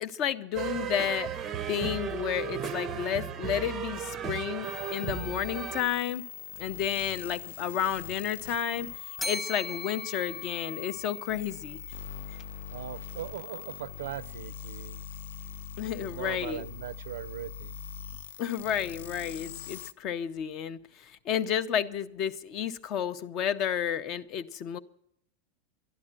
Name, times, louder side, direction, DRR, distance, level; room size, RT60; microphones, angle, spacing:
voice 1, 0.0-1.4 1.7-6.2 6.6-8.9 9.2-11.8 15.8-16.7 18.4-24.8, left 9 dB, 30° left, 0.6 m, -31 dB
sound 1, 0.5-5.8, right 8 dB, 20° right, 0.6 m, -35 dB
sound 2, 4.6-19.9, left 9 dB, 90° left, 0.5 m, -42 dB
Bell, 9.2-11.4, left 2 dB, 5° left, 1.0 m, -38 dB
voice 2, 12.7-15.0 15.8-17.8, right 12 dB, 75° right, 0.5 m, -40 dB
12.0 x 11.5 x 8.8 m
supercardioid pair, 180°, 0 cm